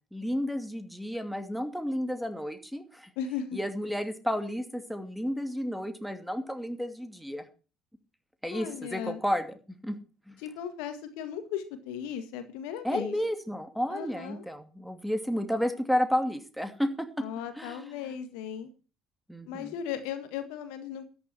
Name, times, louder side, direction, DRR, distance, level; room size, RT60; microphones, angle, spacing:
voice 1, 0.1-3.1 3.5-7.5 8.4-9.6 9.8-10.0 10.3-10.4 12.8-17.2 17.6-17.9 19.3-19.7, equal, ahead, 8 dB, 2.7 m, -32 dB
voice 2, 3.2-3.6 8.5-9.2 10.4-13.2 13.9-14.5 17.2-18.7 19.5-21.0, left 9 dB, 65° left, 10 dB, 1.8 m, -36 dB
13.5 x 10.5 x 4.4 m, 0.35 s
figure-of-eight pair, 60°, 0 cm